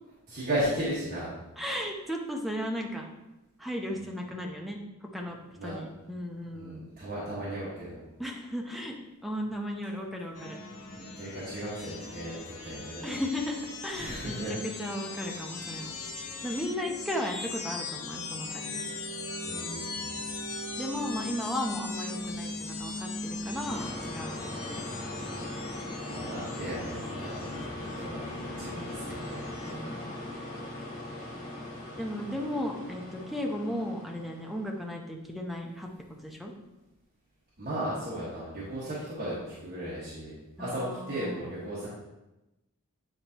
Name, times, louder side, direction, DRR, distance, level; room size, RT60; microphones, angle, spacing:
voice 1, 0.3-1.4 5.6-5.7 6.5-8.0 10.8-13.1 13.9-14.5 19.4-20.1 26.0-29.4 29.7-30.0 37.6-41.9, right 1 dB, 40° right, -9 dB, 1.5 m, -36 dB
voice 2, 1.6-3.1 3.6-6.9 8.2-9.0 9.2-10.6 13.0-14.4 14.6-15.9 16.4-18.8 20.1-20.2 20.8-24.8 27.8-28.0 29.6-30.2 32.0-35.9 36.2-36.5 40.6-41.5, equal, ahead, 0 dB, 0.7 m, -35 dB
sound 1, 10.3-29.7, left 3 dB, 75° left, 1.0 m, -39 dB
sound 2, 23.6-34.9, left 1 dB, 35° left, 1.4 m, -40 dB
8.9 x 4.1 x 2.9 m, 0.98 s
head